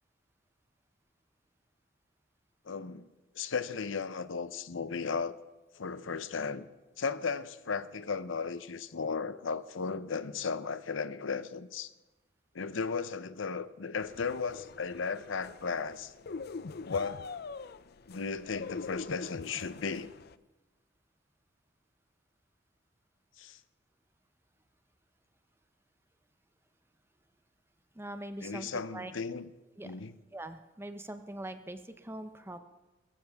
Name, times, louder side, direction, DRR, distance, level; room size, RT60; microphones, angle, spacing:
voice 1, 2.6-3.1 3.3-5.4 5.7-6.7 7.0-11.9 12.5-16.1 16.8-17.3 18.1-20.1 23.4-23.6 28.4-29.5 29.8-30.1, left 5 dB, 85° left, 0.8 m, -35 dB
sound 1, 14.0-20.4, left 4 dB, 55° left, 0.5 m, -44 dB
voice 2, 27.9-29.1 29.8-29.9 30.3-32.6, right 1 dB, 10° right, 0.7 m, -42 dB
21.5 x 15.0 x 3.6 m
head